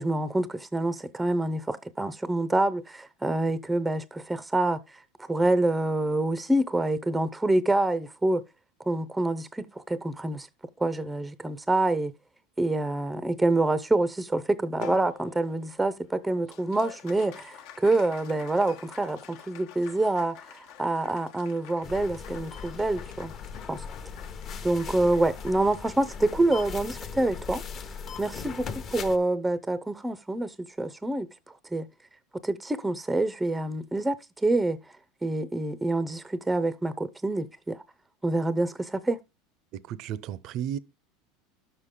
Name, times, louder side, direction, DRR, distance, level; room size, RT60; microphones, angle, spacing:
voice 1, 0.0-4.8 5.3-8.4 8.8-10.5 10.8-12.1 12.6-23.3 23.7-23.8 24.6-27.6 28.2-31.3 31.7-31.9 32.4-34.8 35.2-37.8 38.2-39.2, right 2 dB, 10° right, 0.6 m, -26 dB
Applause, 14.8-29.4, left 10 dB, 65° left, 1.1 m, -49 dB
sound 1, 21.8-29.2, left 6 dB, 35° left, 0.9 m, -39 dB
voice 2, 39.7-40.8, right 10 dB, 50° right, 0.6 m, -33 dB
11.5 x 6.6 x 3.7 m
supercardioid pair, 130°, 0 cm